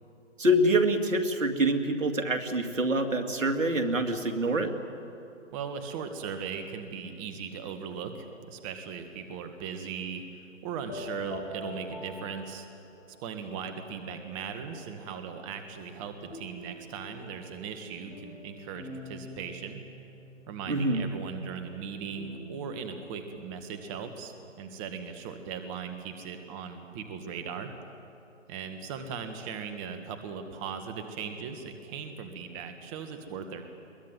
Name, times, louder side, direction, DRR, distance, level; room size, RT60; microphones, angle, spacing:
voice 1, 0.4-4.7 20.7-21.1, right 1 dB, 85° right, 5 dB, 2.5 m, -26 dB
voice 2, 5.5-10.2 10.6-12.7 13.2-19.8 20.5-27.7 28.5-33.6, right 6 dB, 25° right, 7 dB, 1.8 m, -38 dB
sound 1, 10.8-13.2 13.8-14.7 16.3-22.4, left 2 dB, 35° left, 5.4 m, -46 dB
22.5 x 20.5 x 9.3 m, 2.8 s
hypercardioid pair, 140°, 38 cm